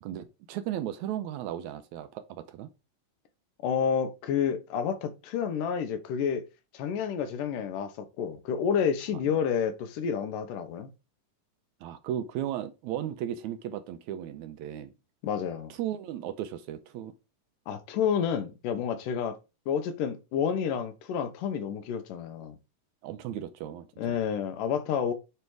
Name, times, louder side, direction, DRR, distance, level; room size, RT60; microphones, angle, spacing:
voice 1, 0.0-2.7 11.8-14.9 15.7-17.1 23.0-24.2, right 11 dB, 75° right, 1.8 m, -35 dB
voice 2, 3.6-6.4 6.7-10.9 15.2-15.7 17.7-19.4 19.7-22.6 24.0-25.1, left 7 dB, 80° left, 2.5 m, -29 dB
9.5 x 3.3 x 4.7 m
omnidirectional pair, 3.8 m